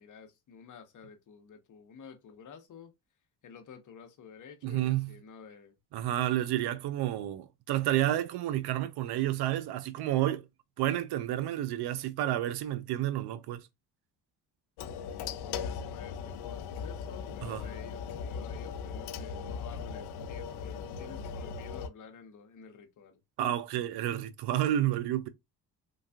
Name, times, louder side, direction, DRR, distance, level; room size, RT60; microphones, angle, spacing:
voice 1, 0.0-2.9 3.4-5.8 15.3-23.2, left 6 dB, 50° left, 0.8 m, -51 dB
voice 2, 4.6-5.1 5.9-10.5 10.8-13.6 17.4-17.6 23.4-25.3, right 13 dB, 70° right, 0.5 m, -30 dB
sound 1, 14.8-21.9, left 6 dB, 75° left, 0.5 m, -38 dB
3.4 x 2.3 x 2.2 m
supercardioid pair, 65°, 40 cm